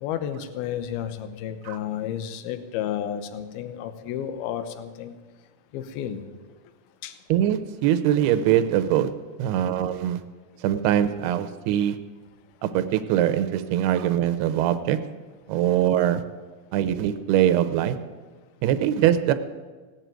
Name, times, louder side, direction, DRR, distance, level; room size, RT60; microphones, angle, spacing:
voice 1, 0.0-5.2 5.7-6.2 7.0-7.2, left 9 dB, 75° left, 11 dB, 2.8 m, -32 dB
voice 2, 7.3-10.2 10.6-11.9 12.6-15.1 15.5-16.4 16.7-18.0 18.6-19.3, right 11 dB, 85° right, 11 dB, 2.8 m, -22 dB
18.0 x 8.2 x 9.0 m, 1.4 s
omnidirectional pair, 4.6 m